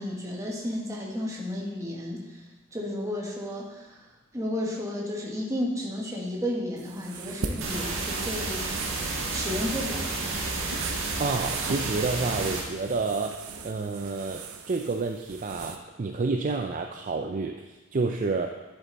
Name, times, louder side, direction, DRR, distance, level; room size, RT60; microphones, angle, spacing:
voice 1, 0.0-2.4 2.7-4.0 4.3-8.8 9.3-10.4, left 1 dB, 15° right, -3 dB, 1.6 m, -33 dB
sound 1, 6.8-15.8, right 4 dB, 90° right, 0.7 m, -40 dB
sound 2, 7.6-12.6, right 3 dB, 60° right, 1.5 m, -31 dB
voice 2, 11.2-18.5, right 3 dB, 35° right, 4 dB, 0.4 m, -29 dB
10.0 x 7.0 x 4.1 m, 1.1 s
head